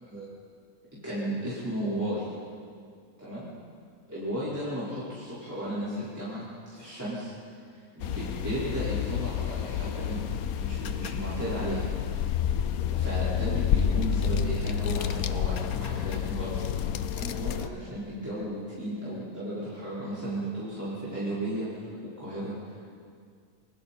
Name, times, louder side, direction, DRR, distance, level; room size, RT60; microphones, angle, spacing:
voice 1, 1.0-2.3 3.2-3.5 4.1-6.5 6.7-7.3 7.6-10.3 10.6-11.8 12.9-16.6 17.1-21.9 22.2-22.9, right 1 dB, 10° right, -11 dB, 5.0 m, -34 dB
sound 1, 8.0-17.7, left 8 dB, 70° left, 1.2 m, -29 dB
28.5 x 21.0 x 4.4 m, 2.1 s
omnidirectional pair, 1.6 m